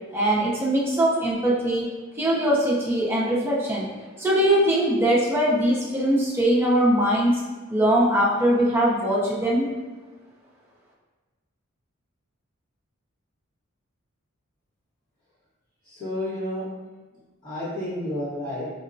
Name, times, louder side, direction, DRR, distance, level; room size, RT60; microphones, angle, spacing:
voice 1, 0.1-1.8 2.2-7.4 7.7-9.7, right 1 dB, 10° right, -6 dB, 0.6 m, -21 dB
voice 2, 15.8-16.6 17.4-18.7, left 1 dB, 40° left, -12 dB, 1.0 m, -30 dB
5.3 x 2.1 x 2.5 m, 1.3 s
head